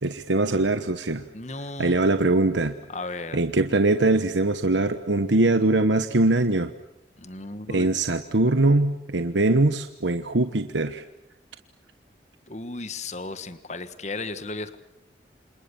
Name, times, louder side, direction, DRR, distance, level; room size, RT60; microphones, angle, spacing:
voice 1, 0.0-1.2 1.8-2.7 3.3-6.7 7.7-11.0, right 2 dB, 85° right, 9 dB, 1.2 m, -22 dB
voice 2, 1.3-2.2 2.9-3.4 7.2-7.9 12.5-14.8, left 3 dB, 40° left, 12 dB, 1.5 m, -35 dB
29.0 x 27.5 x 7.1 m, 0.80 s
head